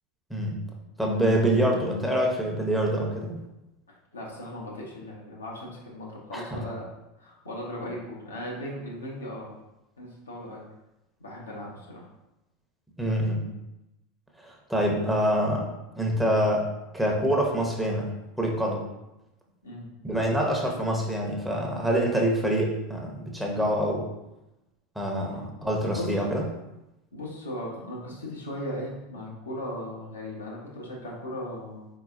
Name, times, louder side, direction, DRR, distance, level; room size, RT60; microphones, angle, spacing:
voice 1, 1.0-3.4 6.3-6.6 13.0-13.5 14.4-15.7 16.0-18.8 20.0-24.1 25.0-26.4, equal, ahead, -1 dB, 0.9 m, -26 dB
voice 2, 4.1-6.9 7.2-9.6 10.0-10.6 11.2-12.0 19.6-19.9 26.0-26.1 27.1-31.9, left 1 dB, 85° left, -4 dB, 1.0 m, -37 dB
4.3 x 4.0 x 2.5 m, 0.92 s
figure-of-eight pair, 85°, 0 cm